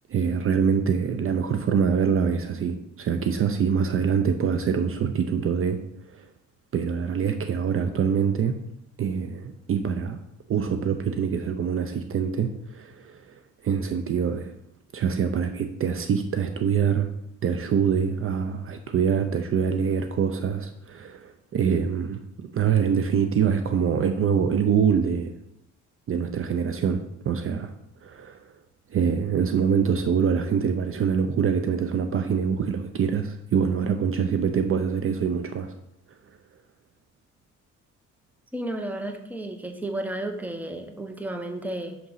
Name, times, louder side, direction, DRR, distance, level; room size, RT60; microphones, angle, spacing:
voice 1, 0.1-5.8 6.1-6.3 6.7-8.6 9.0-10.2 10.5-14.5 14.9-17.1 17.4-25.3 26.1-27.0 27.2-27.7 28.0-28.5 28.9-35.7, right 7 dB, 45° right, 7 dB, 0.5 m, -25 dB
voice 2, 38.5-42.0, right 1 dB, 5° right, 5 dB, 0.8 m, -32 dB
6.0 x 3.7 x 5.5 m, 0.82 s
cardioid pair, 90°, 30 cm